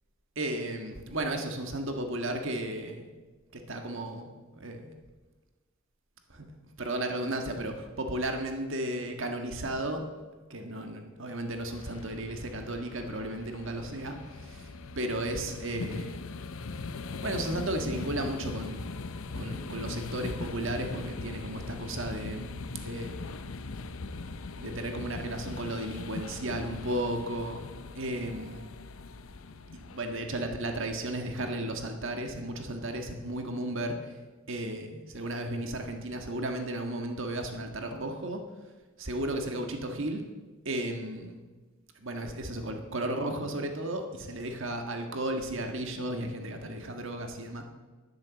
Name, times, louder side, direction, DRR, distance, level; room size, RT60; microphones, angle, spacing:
voice 1, 0.3-3.1 3.5-4.9 6.3-6.5 6.8-10.1 10.5-16.2 17.2-19.1 19.4-22.5 22.8-23.4 24.6-27.6 27.9-28.7 29.7-34.2 34.5-38.4 39.0-40.2 40.6-41.4 42.0-47.6, right 1 dB, 60° right, 5 dB, 1.6 m, -34 dB
sound 1, 11.6-30.6, left 3 dB, 65° left, 0.6 m, -40 dB
11.0 x 10.5 x 7.1 m, 1.3 s
head